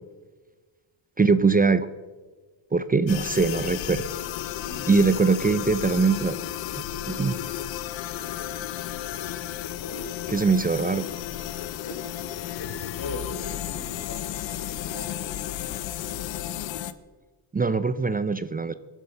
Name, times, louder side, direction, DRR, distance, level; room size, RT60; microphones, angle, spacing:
voice 1, 1.2-1.9 2.7-4.0 4.9-6.4 6.7-7.4 10.3-11.1 17.5-18.7, right 4 dB, 20° right, 13 dB, 0.7 m, -22 dB
sound 1, 3.1-16.9, left 12 dB, 70° left, 1.0 m, -33 dB
voice 2, 4.6-6.2 9.8-10.5 11.8-12.0 12.5-15.3 15.6-16.1, left 2 dB, 50° left, 2 dB, 4.8 m, -41 dB
22.0 x 11.0 x 5.8 m, 1.3 s
cardioid pair, 85°, 46 cm